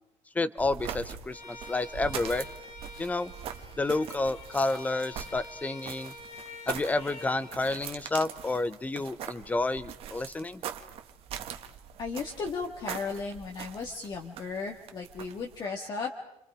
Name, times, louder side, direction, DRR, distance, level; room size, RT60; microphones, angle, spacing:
voice 1, 0.3-2.5 3.0-3.3 3.8-6.1 6.7-10.6, left 2 dB, 15° left, 15 dB, 0.8 m, -30 dB
sound 1, 0.6-15.6, right 9 dB, 55° right, 1.7 m, -42 dB
Bowed string instrument, 1.3-7.6, left 2 dB, 75° left, 3.2 m, -47 dB
voice 2, 12.0-16.3, left 4 dB, 40° left, 1 dB, 1.8 m, -35 dB
29.0 x 25.0 x 4.9 m, 0.83 s
cardioid pair, 145°, 11 cm